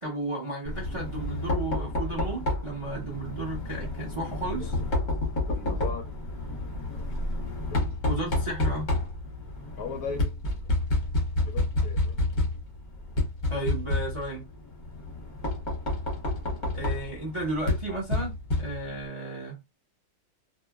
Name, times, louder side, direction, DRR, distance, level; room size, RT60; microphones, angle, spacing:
voice 1, 0.0-4.7 8.1-8.9 13.5-14.5 16.7-18.3 18.6-19.6, right 2 dB, 25° right, 0.6 m, -33 dB
Knock, 0.6-19.1, left 2 dB, 35° left, 0.8 m, -30 dB
voice 2, 5.5-6.1 6.9-7.0 7.7-7.8 9.7-10.8 11.2-12.2, left 5 dB, 65° left, 0.9 m, -39 dB
2.9 x 2.4 x 2.3 m
omnidirectional pair, 1.9 m